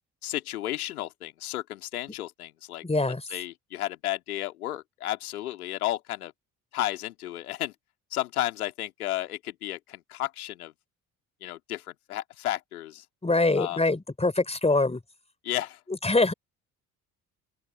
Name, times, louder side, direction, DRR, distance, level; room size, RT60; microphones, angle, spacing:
voice 1, 0.2-2.8 3.3-6.3 6.7-7.7 8.1-10.7 11.4-13.0 13.6-13.8 15.4-15.8, left 14 dB, 80° left, 2.5 m, -33 dB
voice 2, 2.8-3.2 13.2-15.0 16.0-16.3, left 2 dB, 15° left, 4.3 m, -24 dB
open air
figure-of-eight pair, 50°, 44 cm